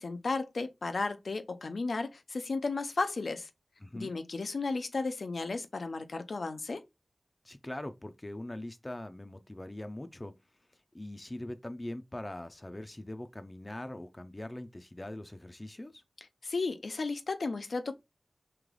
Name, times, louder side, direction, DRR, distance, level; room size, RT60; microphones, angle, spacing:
voice 1, 0.0-3.5 3.9-6.8 16.4-17.9, left 3 dB, 75° left, 0.5 m, -34 dB
voice 2, 3.8-4.1 7.4-10.3 10.9-16.0, left 1 dB, 25° left, 0.4 m, -42 dB
3.2 x 2.9 x 3.7 m
wide cardioid pair, 65°, 0 cm